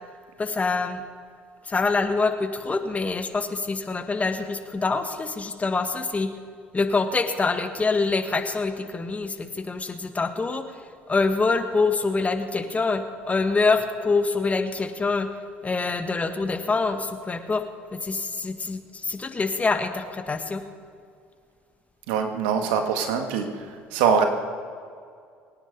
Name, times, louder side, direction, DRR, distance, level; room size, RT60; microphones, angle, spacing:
voice 1, 0.4-1.0 1.7-6.3 6.7-10.6 11.1-15.3 15.6-17.6 17.9-20.6, left 3 dB, 25° left, 8 dB, 1.6 m, -25 dB
voice 2, 22.1-23.5 23.9-24.2, right 7 dB, 80° right, 6 dB, 1.7 m, -23 dB
24.0 x 9.8 x 5.3 m, 2.2 s
hypercardioid pair, 70°, 6 cm